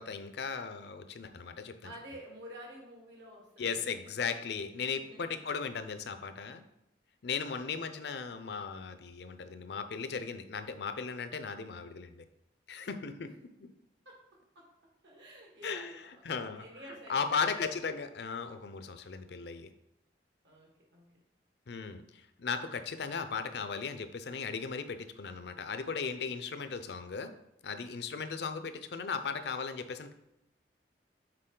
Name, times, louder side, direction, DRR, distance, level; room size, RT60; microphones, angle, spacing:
voice 1, 0.0-1.9 3.6-6.6 7.2-12.2 12.7-13.3 15.6-16.6 17.1-19.7 21.7-27.3 27.6-30.1, left 5 dB, 65° left, 9 dB, 0.5 m, -37 dB
voice 2, 1.8-4.0 4.8-5.2 7.6-8.3 13.2-13.3 14.0-14.7 15.0-17.9 20.4-21.2 28.3-28.7, right 1 dB, 75° right, -1 dB, 1.8 m, -51 dB
6.7 x 4.0 x 3.8 m, 0.86 s
head